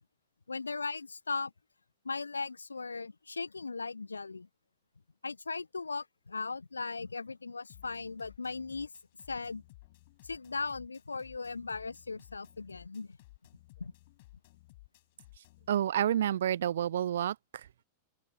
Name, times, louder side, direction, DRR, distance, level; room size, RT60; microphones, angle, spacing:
voice 1, 0.5-1.5 2.0-4.5 5.2-8.9 9.3-9.6 10.2-13.2 13.8-13.9, left 4 dB, 80° left, 0.4 m, -38 dB
sound 1, 7.7-15.7, left 19 dB, 50° left, 5.7 m, -57 dB
voice 2, 15.7-17.8, right 10 dB, 60° right, 0.7 m, -30 dB
open air
figure-of-eight pair, 90°, 0 cm